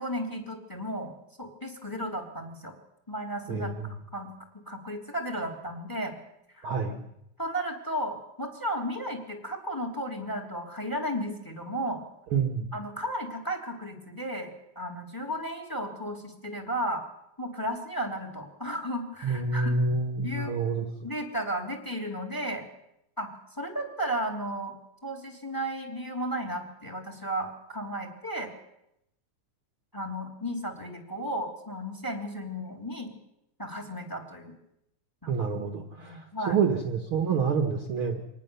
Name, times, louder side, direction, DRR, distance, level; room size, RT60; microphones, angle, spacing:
voice 1, 0.0-2.7 3.1-3.7 4.1-4.3 4.7-6.1 6.5-6.7 7.4-12.0 12.7-17.0 17.4-19.7 20.2-20.5 21.0-22.7 23.2-24.7 25.0-28.5 29.9-33.1 33.6-34.5 35.2-35.3 36.0-36.6, equal, 5° left, 4 dB, 2.8 m, -34 dB
voice 2, 3.5-3.9 6.6-7.0 12.3-12.7 19.2-20.9 35.3-38.2, right 5 dB, 50° right, 5 dB, 1.9 m, -28 dB
25.0 x 19.5 x 7.0 m, 0.81 s
omnidirectional pair, 3.6 m